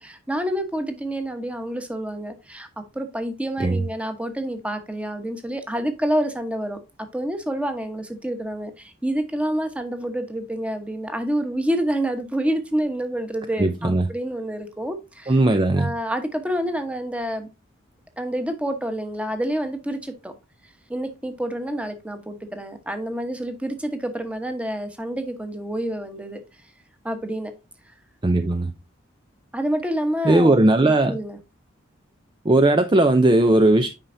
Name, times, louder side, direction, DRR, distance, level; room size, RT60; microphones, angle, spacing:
voice 1, 0.0-15.4 15.8-17.5 18.2-20.3 20.9-26.4 27.0-27.5 29.5-31.4, right 1 dB, 5° right, 1.1 m, -28 dB
voice 2, 13.6-14.0 15.3-15.9 28.2-28.7 30.2-31.2 32.5-33.9, right 2 dB, 25° right, 0.5 m, -17 dB
8.9 x 5.5 x 2.6 m
head